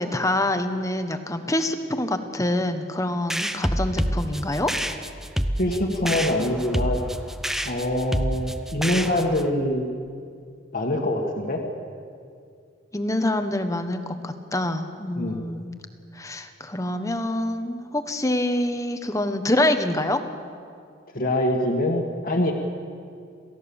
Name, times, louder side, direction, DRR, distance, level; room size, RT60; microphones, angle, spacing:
voice 1, 0.0-4.7 12.9-15.7 16.1-20.2, left 1 dB, 15° left, 8 dB, 1.3 m, -26 dB
sound 1, 3.3-9.5, equal, ahead, 0.7 m, -28 dB
voice 2, 5.6-7.0 7.6-9.9 10.7-11.6 15.2-15.4 21.1-22.5, left 1 dB, 50° left, 0 dB, 1.8 m, -24 dB
28.5 x 16.0 x 7.2 m, 2.3 s
head